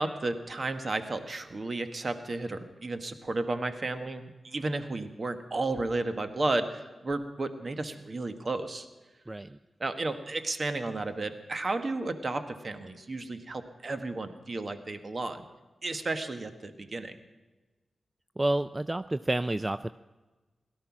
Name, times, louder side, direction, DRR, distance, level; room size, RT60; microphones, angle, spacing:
voice 1, 0.0-8.9 9.8-15.5 15.8-17.2, right 2 dB, 45° right, 8 dB, 1.4 m, -33 dB
voice 2, 9.3-9.6 18.4-19.9, right 1 dB, 20° right, 13 dB, 0.4 m, -29 dB
17.0 x 13.0 x 6.0 m, 1.2 s
cardioid pair, 60°, 0 cm